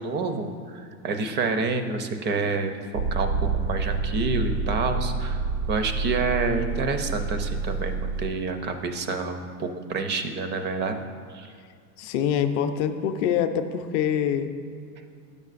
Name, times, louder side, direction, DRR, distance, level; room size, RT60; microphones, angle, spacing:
voice 1, 0.0-5.4 5.7-11.0 11.3-11.5, right 4 dB, 25° right, 7 dB, 0.5 m, -28 dB
Motor vehicle (road), 3.0-8.3, right 4 dB, 60° right, 0.7 m, -28 dB
voice 2, 12.0-14.5, left 8 dB, 40° left, 8 dB, 0.5 m, -25 dB
11.5 x 6.7 x 2.5 m, 2.2 s
hypercardioid pair, 95°, 49 cm